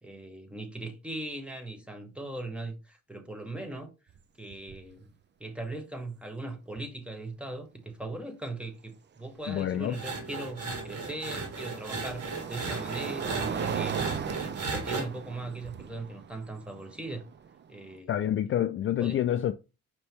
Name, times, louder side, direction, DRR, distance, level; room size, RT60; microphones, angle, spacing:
voice 1, 0.0-3.9 4.4-5.1 5.4-14.0 14.4-17.2 17.7-18.2 19.0-19.2, right 2 dB, 5° right, 1.2 m, -39 dB
sound 1, 4.1-4.2 4.5-4.9 6.8-6.9 9.8-18.0, right 7 dB, 35° right, 0.5 m, -38 dB
voice 2, 9.5-10.0 18.1-19.5, left 11 dB, 45° left, 0.4 m, -27 dB
sound 2, 9.9-15.0, right 3 dB, 55° right, 1.8 m, -35 dB
5.2 x 3.0 x 3.4 m
cardioid pair, 90°, 30 cm